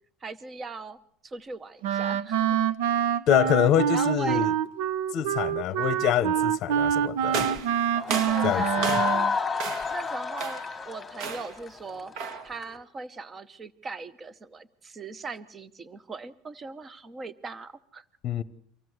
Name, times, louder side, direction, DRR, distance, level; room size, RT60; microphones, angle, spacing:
voice 1, 0.2-1.0 1.2-2.6 3.9-4.5 8.1-9.3 9.9-12.1 12.4-18.0, right 4 dB, 15° right, 0.8 m, -39 dB
Wind instrument woodwind instrument, 1.8-9.4, right 9 dB, 75° right, 0.9 m, -26 dB
voice 2, 3.3-4.5 5.1-7.5 8.4-9.0 18.2-18.4, left 11 dB, 35° left, 0.9 m, -25 dB
sound 1, 7.3-9.3 9.6-10.0 10.4-10.8 11.2-11.6 12.1-12.5, right 5 dB, 45° right, 1.7 m, -34 dB
sound 2, 7.9-12.7, left 5 dB, 10° left, 1.8 m, -30 dB
25.0 x 16.0 x 7.9 m
cardioid pair, 180°, 0 cm